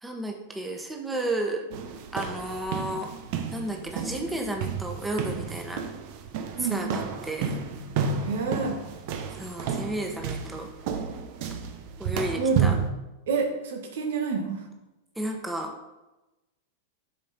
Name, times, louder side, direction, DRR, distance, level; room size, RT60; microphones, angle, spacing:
voice 1, 0.0-1.7 2.1-3.1 3.5-5.8 6.6-7.6 9.3-10.7 12.0-12.7 15.1-15.7, right 1 dB, 10° right, 2 dB, 1.4 m, -32 dB
sound 1, 1.7-12.9, right 7 dB, 55° right, 1.0 m, -31 dB
voice 2, 6.6-7.0 8.2-8.8 12.4-12.8 13.3-14.6, right 4 dB, 75° right, 3 dB, 1.6 m, -28 dB
8.9 x 5.6 x 4.3 m, 1.0 s
hypercardioid pair, 105°, 0 cm